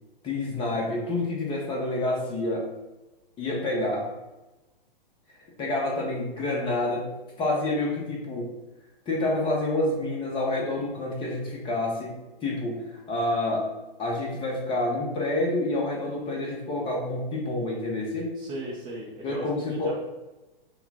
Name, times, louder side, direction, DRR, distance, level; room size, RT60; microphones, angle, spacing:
voice 1, 0.2-2.7 3.4-4.1 5.6-7.1 7.4-8.5 9.1-12.1 12.4-13.7 14.0-18.4 19.2-20.0, left 2 dB, 15° left, -1 dB, 0.9 m, -28 dB
voice 2, 18.3-20.0, right 1 dB, 15° right, -5 dB, 0.6 m, -37 dB
5.8 x 2.2 x 4.1 m, 1.1 s
figure-of-eight pair, 115°, 29 cm